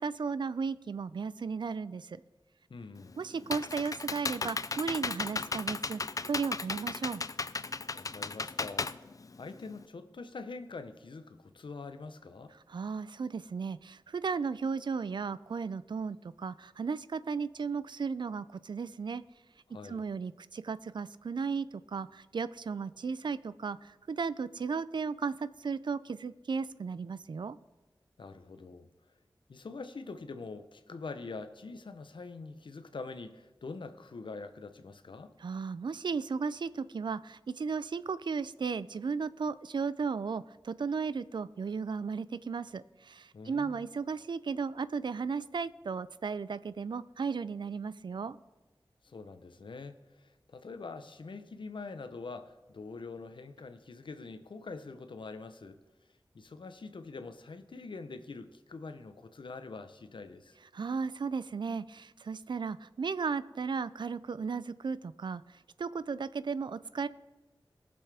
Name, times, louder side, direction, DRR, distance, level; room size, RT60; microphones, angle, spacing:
voice 1, 0.0-2.2 3.2-7.2 12.7-19.2 19.9-27.6 35.4-48.4 60.7-67.1, right 5 dB, 65° right, 16 dB, 0.4 m, -35 dB
voice 2, 2.7-3.1 7.9-8.9 9.4-12.6 19.7-20.0 28.2-28.9 29.5-35.3 43.3-43.9 49.0-55.8 56.3-60.6, left 4 dB, 75° left, 10 dB, 0.7 m, -44 dB
Computer keyboard, 3.0-9.8, left 4 dB, 45° left, 0.4 m, -35 dB
19.5 x 6.9 x 3.4 m, 1.1 s
wide cardioid pair, 50°, 8 cm